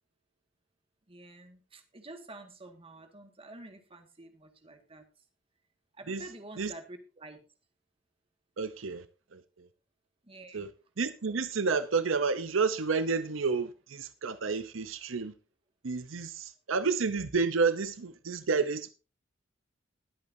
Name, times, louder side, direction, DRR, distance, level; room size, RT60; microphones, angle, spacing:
voice 1, 1.1-5.1 5.9-7.4 10.2-10.7, right 2 dB, 30° right, 1.9 m, -49 dB
voice 2, 8.6-9.0 9.3-9.7 10.5-10.7 11.0-15.3 15.8-18.9, right 4 dB, 80° right, 0.8 m, -30 dB
20.0 x 8.5 x 2.7 m
head